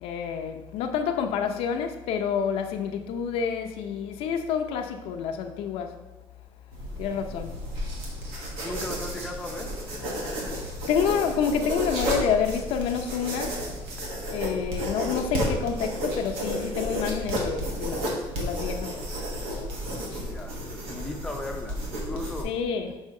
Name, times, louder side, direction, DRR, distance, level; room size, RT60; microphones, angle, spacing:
voice 1, 0.0-6.0 7.0-7.7 10.4-13.6 14.3-20.3 22.4-23.0, left 7 dB, 75° left, 0.6 m, -29 dB
sound 1, 6.7-22.4, equal, 80° right, 1.6 m, -32 dB
voice 2, 8.6-9.7 20.1-22.5, left 2 dB, 5° left, 0.6 m, -37 dB
6.3 x 4.9 x 3.7 m
cardioid pair, 160°, 10 cm